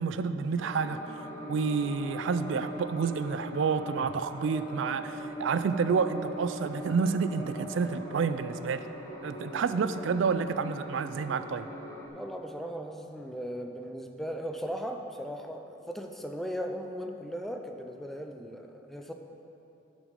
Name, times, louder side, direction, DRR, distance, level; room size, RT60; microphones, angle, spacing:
voice 1, 0.0-8.8 9.2-11.7, right 5 dB, 65° right, 11 dB, 0.3 m, -29 dB
sound 1, 0.6-12.1, equal, 15° left, 0.9 m, -41 dB
voice 2, 12.1-19.1, equal, ahead, 3 dB, 0.4 m, -38 dB
12.0 x 6.1 x 5.1 m, 2.9 s
head